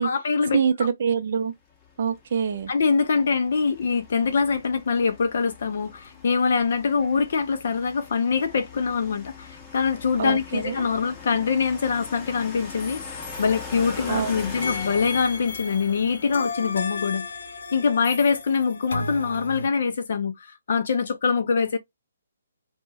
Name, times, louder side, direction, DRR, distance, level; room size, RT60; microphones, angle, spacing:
voice 1, 0.0-0.6 2.7-17.3 17.7-21.8, left 5 dB, 55° left, 0.4 m, -24 dB
voice 2, 0.5-1.5 2.0-2.7 10.2-10.9 14.1-14.4, right 6 dB, 45° right, 0.4 m, -25 dB
sound 1, 1.8-18.0, left 5 dB, 15° left, 0.6 m, -42 dB
sound 2, 12.8-14.2 14.6-19.7, left 3 dB, 85° left, 0.7 m, -34 dB
2.1 x 2.1 x 3.3 m
hypercardioid pair, 165°, 0 cm